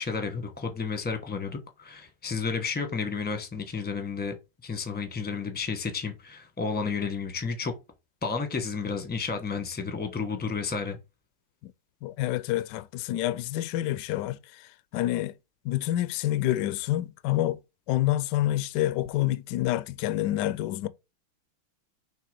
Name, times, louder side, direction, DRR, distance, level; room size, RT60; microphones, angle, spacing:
voice 1, 0.0-4.3 4.6-7.7 8.2-11.0, left 5 dB, 10° left, 0.5 m, -31 dB
voice 2, 12.0-15.3 15.6-17.6 17.9-20.9, left 14 dB, 80° left, 1.0 m, -28 dB
5.7 x 3.5 x 5.0 m
omnidirectional pair, 2.3 m